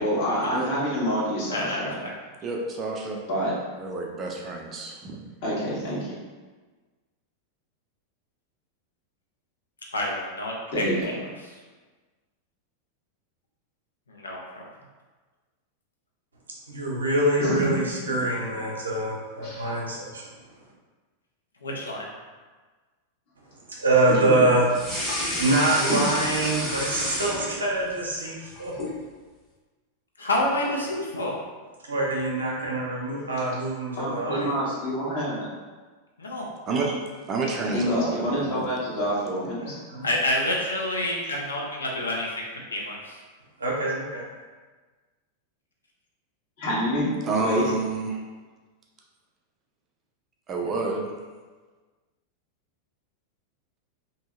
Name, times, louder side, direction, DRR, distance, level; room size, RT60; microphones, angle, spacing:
voice 1, 0.0-2.0 3.3-3.5 5.4-6.1 10.7-11.1 17.4-17.7 19.4-19.7 24.1-24.4 33.2-33.3 34.0-35.5 37.7-39.7 46.6-47.1 47.4-47.6, equal, 50° left, -8 dB, 1.1 m, -27 dB
voice 2, 1.5-2.1 9.9-10.8 14.1-14.4 21.6-22.1 30.2-31.3 36.2-36.5 40.0-42.4 42.7-43.2, left 1 dB, 75° left, -2 dB, 0.5 m, -28 dB
voice 3, 2.4-3.2 3.8-5.2 36.7-37.0 37.3-38.7 47.2-48.2 50.5-51.1, right 3 dB, 25° right, -1 dB, 0.4 m, -29 dB
voice 4, 16.7-20.4 23.6-24.7 25.4-28.7 31.8-34.5 39.6-40.1 43.6-44.3, right 2 dB, 75° right, -3 dB, 0.6 m, -25 dB
sound 1, 24.7-27.9 28.3-29.0, left 1 dB, 20° left, 1.1 m, -30 dB
2.7 x 2.6 x 2.3 m, 1.4 s
figure-of-eight pair, 90°, 0 cm